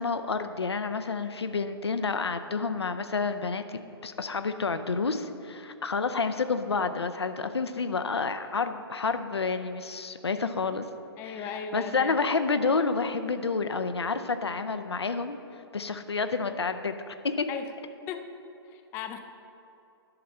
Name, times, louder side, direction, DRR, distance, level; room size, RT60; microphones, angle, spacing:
voice 1, 0.0-10.8 11.2-15.4 15.7-17.5, left 4 dB, 75° left, 9 dB, 0.5 m, -29 dB
voice 2, 11.2-12.2 17.5-17.7 18.1-18.3 18.7-19.2, left 7 dB, 15° left, 8 dB, 0.3 m, -37 dB
11.0 x 6.5 x 4.2 m, 2.7 s
figure-of-eight pair, 120°, 14 cm